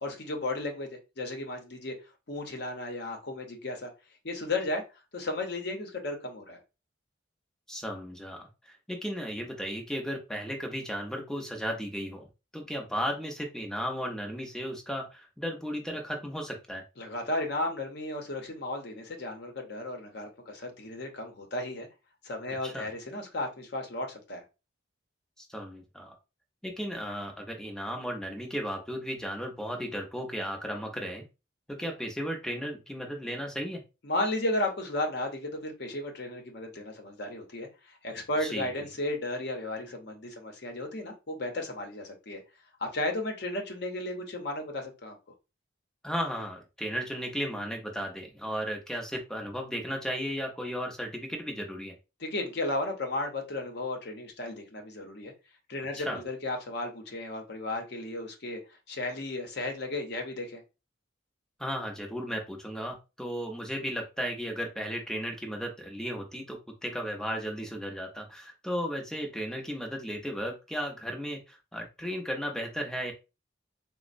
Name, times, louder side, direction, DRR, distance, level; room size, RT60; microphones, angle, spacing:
voice 1, 0.0-1.9 2.3-3.9 4.2-4.8 5.1-6.6 17.0-21.9 22.2-24.4 34.0-42.4 42.8-45.1 52.2-55.3 55.7-58.6 58.9-60.6, left 2 dB, 60° left, 0.7 m, -34 dB
voice 2, 7.7-12.3 12.5-16.8 22.6-22.9 25.4-26.2 26.6-31.2 31.7-33.8 38.4-38.7 46.0-51.9 56.0-56.2 61.6-73.1, equal, 5° left, 0.6 m, -35 dB
4.0 x 2.0 x 2.5 m
head